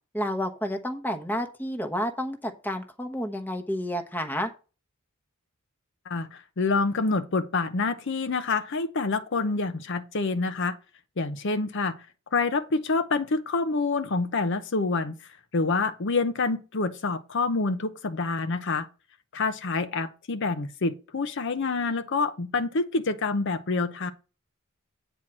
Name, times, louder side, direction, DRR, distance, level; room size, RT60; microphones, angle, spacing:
voice 1, 0.1-4.5, equal, 10° left, 1.0 m, -30 dB
voice 2, 6.1-10.8 11.2-12.0 12.3-18.9 19.3-24.1, left 3 dB, 55° left, 0.7 m, -27 dB
9.2 x 4.4 x 6.1 m
head